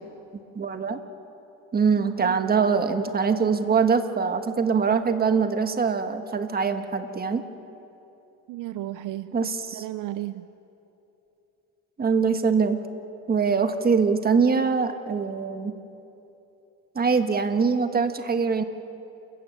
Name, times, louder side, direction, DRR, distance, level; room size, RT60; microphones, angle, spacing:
voice 1, 0.5-1.0 1.7-7.4 9.3-9.8 12.0-12.8 13.3-15.7 16.9-18.6, right 5 dB, 30° right, 8 dB, 1.5 m, -23 dB
voice 2, 1.9-2.4 8.5-10.5, right 14 dB, 70° right, 13 dB, 0.7 m, -35 dB
29.0 x 14.5 x 8.5 m, 2.9 s
cardioid pair, 115°, 33 cm